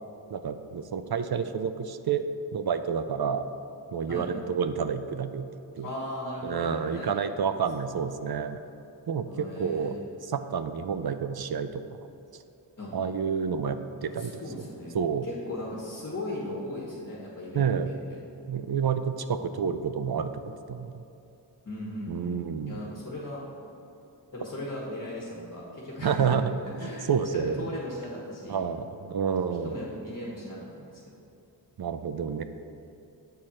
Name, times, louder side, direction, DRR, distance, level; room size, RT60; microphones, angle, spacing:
voice 1, 0.3-2.2 2.5-3.5 3.9-5.4 5.8-5.9 6.4-8.6 9.1-10.0 10.2-12.0 12.9-14.6 14.9-15.3 17.5-17.9 18.5-20.4 20.7-21.0 22.1-22.8 26.0-26.5 26.8-27.7 28.5-29.8 31.8-32.4, right 7 dB, 60° right, 10 dB, 0.5 m, -29 dB
voice 2, 5.8-7.2 9.3-10.0 12.8-13.0 14.0-14.9 15.2-18.2 21.6-22.4 22.6-23.4 24.3-26.4 26.8-28.6 29.3-31.2, left 1 dB, 35° left, -4 dB, 1.4 m, -38 dB
8.2 x 4.3 x 6.4 m, 2.7 s
wide cardioid pair, 80°, 44 cm